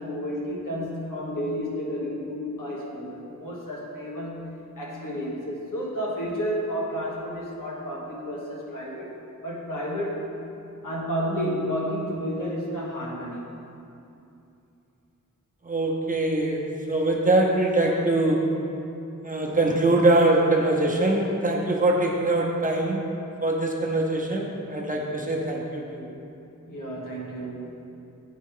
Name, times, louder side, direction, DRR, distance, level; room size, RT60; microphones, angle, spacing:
voice 1, 0.0-9.2 9.4-10.2 10.8-13.4 26.7-27.9, equal, 85° left, -4 dB, 1.3 m, -31 dB
voice 2, 15.6-18.6 19.2-23.1 23.4-26.1, right 2 dB, 25° right, -1 dB, 0.8 m, -23 dB
8.4 x 4.3 x 3.8 m, 2.7 s
wide cardioid pair, 90°, 31 cm